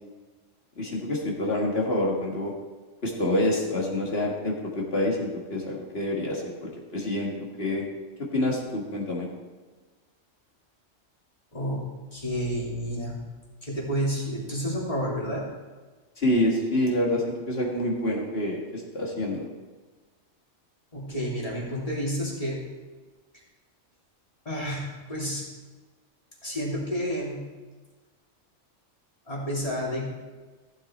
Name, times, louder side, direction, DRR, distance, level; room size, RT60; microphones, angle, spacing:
voice 1, 0.8-2.5 3.0-7.9 8.2-9.3 16.2-19.4, left 1 dB, 55° left, -2 dB, 2.0 m, -27 dB
voice 2, 12.1-13.1 13.6-15.4 20.9-22.6 24.4-25.4 26.4-27.5 29.3-30.0, equal, 30° left, -4 dB, 2.9 m, -30 dB
15.0 x 7.7 x 4.3 m, 1.3 s
omnidirectional pair, 1.3 m